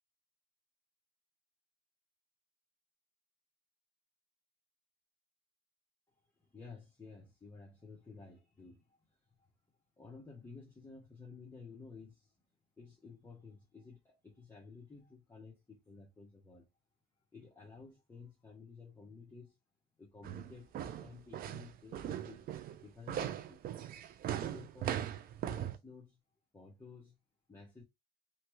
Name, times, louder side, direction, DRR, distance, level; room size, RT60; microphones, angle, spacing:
voice 1, 6.4-9.0 9.4-9.5 10.0-12.3 12.8-16.7 17.3-19.6 20.0-22.4 22.8-23.7 24.4-25.1 25.5-26.2 26.5-27.2 27.5-27.8, left 4 dB, 15° left, 0.9 m, -53 dB
sound 1, 20.2-25.8, right 10 dB, 60° right, 0.5 m, -39 dB
2.9 x 2.3 x 3.0 m
cardioid pair, 110°, 17 cm